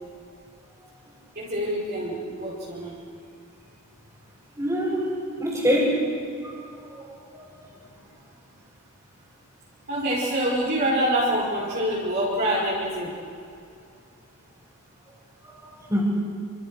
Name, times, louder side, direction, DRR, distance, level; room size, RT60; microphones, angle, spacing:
voice 1, 1.3-3.0 9.9-13.2, right 1 dB, 45° right, -7 dB, 5.6 m, -26 dB
voice 2, 4.6-5.1 5.4-6.0 6.4-6.5 7.0-7.1 7.3-7.5 15.4-15.5 15.9-16.0, equal, 15° right, -9 dB, 6.1 m, -24 dB
29.0 x 27.0 x 6.5 m, 2.4 s
head